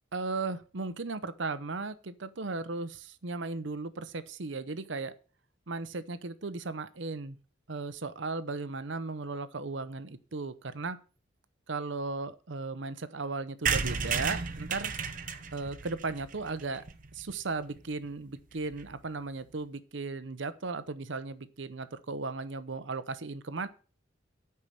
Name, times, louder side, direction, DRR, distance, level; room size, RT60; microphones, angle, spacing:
voice 1, 0.1-5.1 5.7-7.4 7.7-11.0 11.7-14.9 15.5-16.8 17.1-23.7, right 3 dB, 70° right, 13 dB, 0.8 m, -36 dB
sound 1, 13.7-17.3 17.8-17.9 18.1-18.2 18.4-18.5 18.7-18.9, right 5 dB, 45° right, 1.0 m, -33 dB
9.7 x 5.7 x 7.5 m, 0.37 s
head